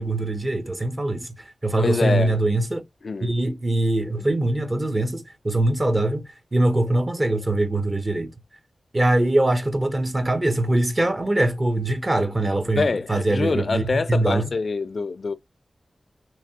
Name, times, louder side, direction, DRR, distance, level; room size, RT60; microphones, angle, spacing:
voice 1, 0.0-1.3 1.6-2.8 3.2-8.3 8.9-14.5, right 1 dB, 35° right, 0.9 m, -22 dB
voice 2, 1.8-2.4 3.0-3.3 12.7-15.3, left 4 dB, 60° left, 0.4 m, -25 dB
3.2 x 2.8 x 2.7 m
wide cardioid pair, 65°, 0 cm